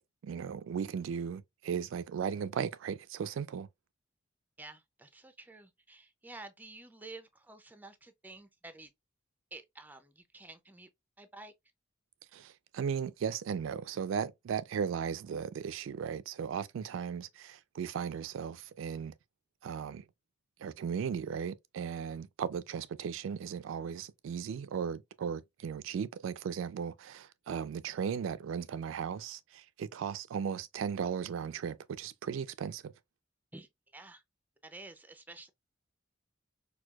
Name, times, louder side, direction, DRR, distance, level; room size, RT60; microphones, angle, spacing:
voice 1, 0.2-3.7 12.3-19.1 19.6-20.0 20.6-32.9, right 7 dB, 80° right, 0.3 m, -36 dB
voice 2, 4.6-8.9 9.5-10.9 11.2-11.5 33.5-34.2 34.6-35.5, right 2 dB, 10° right, 0.4 m, -50 dB
4.4 x 2.2 x 2.3 m
head